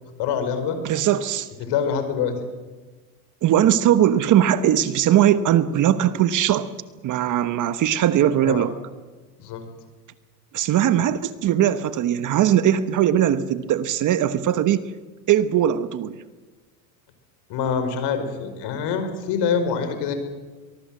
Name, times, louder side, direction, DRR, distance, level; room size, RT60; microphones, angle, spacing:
voice 1, 0.2-0.8 1.6-2.4 8.4-8.6 9.4-9.6 17.5-20.1, left 6 dB, 55° left, 9 dB, 4.9 m, -25 dB
voice 2, 0.8-1.5 3.4-6.7 7.0-8.7 10.5-14.8 15.3-16.1, right 11 dB, 40° right, 13 dB, 1.1 m, -20 dB
23.5 x 20.5 x 7.7 m, 1.3 s
supercardioid pair, 110°, 49 cm